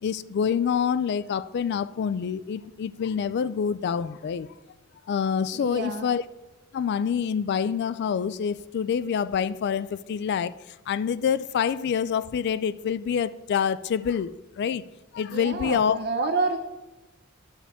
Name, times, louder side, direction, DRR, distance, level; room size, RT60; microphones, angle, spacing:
voice 1, 0.0-4.5 5.1-6.2 6.7-10.5 10.9-14.8 15.1-16.0, left 7 dB, 55° left, 0.3 m, -26 dB
voice 2, 5.5-6.1 15.3-16.6, right 3 dB, 50° right, 0.6 m, -28 dB
9.8 x 7.0 x 3.6 m
head